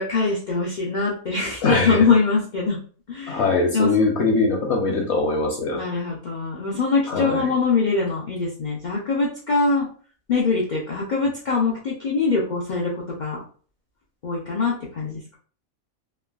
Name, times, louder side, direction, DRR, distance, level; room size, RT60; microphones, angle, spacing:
voice 1, 0.0-2.8 3.1-3.9 5.7-9.9 10.3-13.4 14.2-15.4, left 4 dB, 80° left, -4 dB, 0.4 m, -23 dB
voice 2, 1.6-2.1 3.3-5.8 7.1-7.5, left 3 dB, 65° left, 0 dB, 0.8 m, -21 dB
3.2 x 2.2 x 2.3 m, 0.43 s
omnidirectional pair, 1.5 m